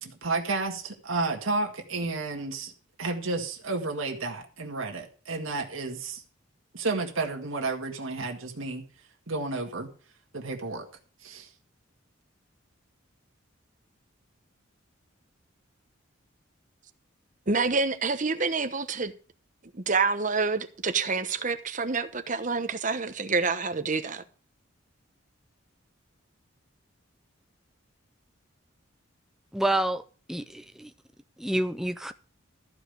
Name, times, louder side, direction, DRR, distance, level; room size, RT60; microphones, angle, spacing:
voice 1, 0.0-2.7 3.0-6.2 6.7-8.8 9.3-9.9 10.3-10.9 11.2-11.5, right 3 dB, 80° right, 1.9 m, -31 dB
voice 2, 17.5-19.1 19.7-24.2, right 4 dB, 40° right, 1.0 m, -27 dB
voice 3, 29.5-30.0 30.3-30.9 31.4-32.1, right 1 dB, ahead, 0.5 m, -28 dB
14.0 x 5.1 x 7.8 m
head